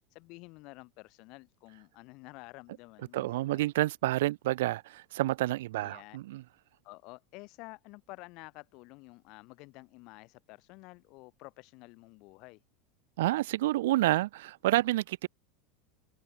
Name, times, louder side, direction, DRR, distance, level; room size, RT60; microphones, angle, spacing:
voice 1, 0.1-3.6 5.8-6.2 6.8-12.6, left 25 dB, 55° left, 3.7 m, -50 dB
voice 2, 3.1-6.4 13.2-15.3, right 16 dB, 80° right, 0.6 m, -29 dB
supercardioid pair, 135°, 0 cm